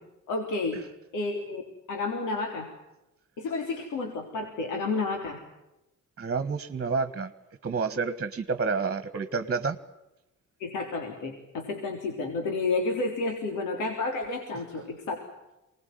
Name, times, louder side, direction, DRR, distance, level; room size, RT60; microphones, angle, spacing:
voice 1, 0.3-0.8 1.1-1.6 1.9-2.7 3.4-5.4 10.6-15.2, left 3 dB, 85° left, 2 dB, 3.7 m, -31 dB
voice 2, 6.2-7.3 7.6-9.8, right 4 dB, 35° right, 11 dB, 1.7 m, -29 dB
24.5 x 20.0 x 9.5 m, 0.96 s
cardioid pair, 90°, 30 cm